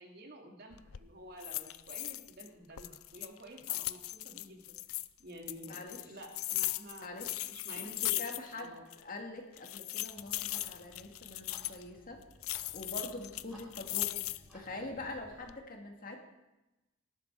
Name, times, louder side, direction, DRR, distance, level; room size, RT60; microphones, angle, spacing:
voice 1, 0.0-4.6 5.2-7.2 7.5-8.2 8.5-8.9, right 1 dB, 50° right, 1 dB, 2.8 m, -50 dB
sound 1, 0.7-1.0 1.4-2.5 2.8-5.1 5.5-8.7 8.9-9.0 9.6-11.8 12.4-14.5 15.0-15.6, left 17 dB, 80° left, 0.5 m, -38 dB
voice 2, 5.7-6.0 7.0-7.3 7.8-12.2 12.7-14.1 14.5-16.2, left 2 dB, 45° left, 3 dB, 2.2 m, -44 dB
Clock, 10.1-15.5, equal, ahead, 4.9 m, -59 dB
18.5 x 12.0 x 4.8 m, 0.99 s
head